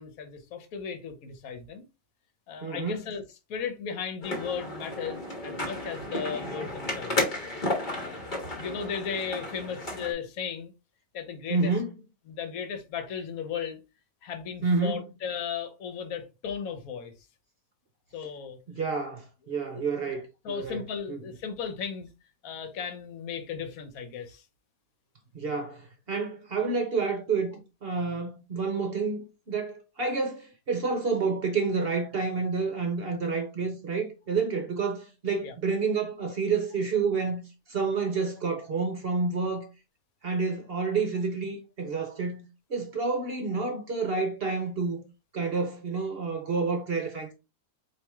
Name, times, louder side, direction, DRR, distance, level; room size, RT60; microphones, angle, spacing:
voice 1, 0.0-1.9 2.5-3.2 3.5-7.3 7.6-8.3 8.6-10.7 11.1-11.7 12.3-13.8 14.2-17.1 18.1-18.6 19.5-19.8 20.4-22.1 22.4-24.5 35.4-35.5, left 7 dB, 70° left, 1.3 m, -36 dB
voice 2, 2.6-3.1 11.5-11.9 14.6-15.0 18.7-20.8 21.1-21.2 25.3-37.4 37.7-39.7 40.2-42.4 42.7-45.0 45.3-47.3, right 4 dB, 50° right, 0.8 m, -29 dB
sound 1, 4.2-10.1, left 1 dB, 35° left, 1.3 m, -33 dB
4.6 x 2.9 x 3.4 m
omnidirectional pair, 1.6 m